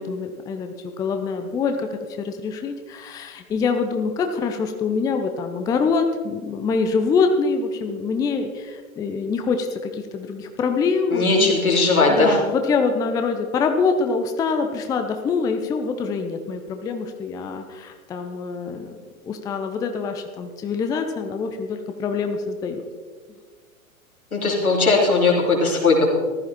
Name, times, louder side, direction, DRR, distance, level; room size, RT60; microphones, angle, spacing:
voice 1, 0.0-11.5 12.1-19.0 19.2-22.9, left 5 dB, 10° left, 6 dB, 0.5 m, -25 dB
voice 2, 11.1-12.4 24.3-26.2, left 3 dB, 80° left, -2 dB, 3.4 m, -18 dB
15.0 x 13.0 x 4.2 m, 1.5 s
figure-of-eight pair, 100°, 42 cm